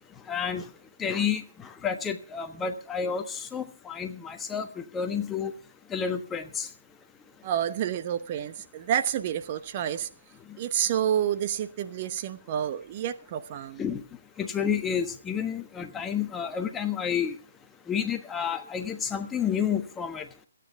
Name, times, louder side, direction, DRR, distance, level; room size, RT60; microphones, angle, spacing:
voice 1, 0.3-0.6 1.0-5.5 5.9-6.7 13.8-14.0 14.4-17.3 17.9-20.3, left 7 dB, 10° left, 1.2 m, -30 dB
voice 2, 7.4-10.1 10.6-13.8, right 10 dB, 30° right, 0.9 m, -29 dB
27.0 x 9.4 x 3.6 m
figure-of-eight pair, 135°, 0 cm